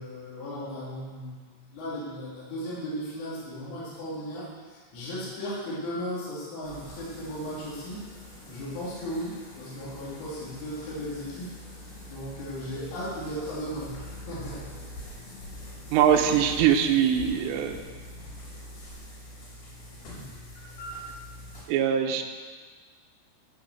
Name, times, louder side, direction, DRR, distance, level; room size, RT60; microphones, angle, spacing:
voice 1, 0.0-1.4 1.7-8.0 8.5-11.6 12.1-14.7 20.1-20.2, equal, 70° left, -7 dB, 5.2 m, -36 dB
sound 1, 6.6-21.6, left 1 dB, 50° left, 4.9 m, -44 dB
voice 2, 15.9-17.8 21.7-22.2, right 9 dB, 75° right, 3 dB, 2.7 m, -22 dB
14.0 x 6.0 x 7.8 m, 1.5 s
omnidirectional pair, 6.0 m